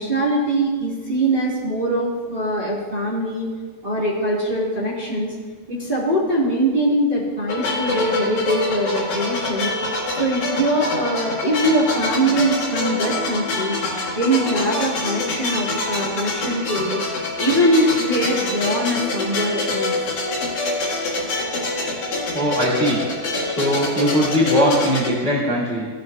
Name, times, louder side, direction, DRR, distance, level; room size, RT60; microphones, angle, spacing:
voice 1, 0.0-3.4 3.8-5.3 5.7-9.7 10.2-13.7 14.1-17.0 17.4-19.9, right 1 dB, 30° right, -8 dB, 1.0 m, -22 dB
sound 1, 7.5-25.1, left 2 dB, 50° left, 2.1 m, -25 dB
voice 2, 22.3-23.0 23.4-25.9, equal, 85° left, -6 dB, 0.5 m, -20 dB
16.0 x 7.7 x 2.6 m, 1.5 s
omnidirectional pair, 4.7 m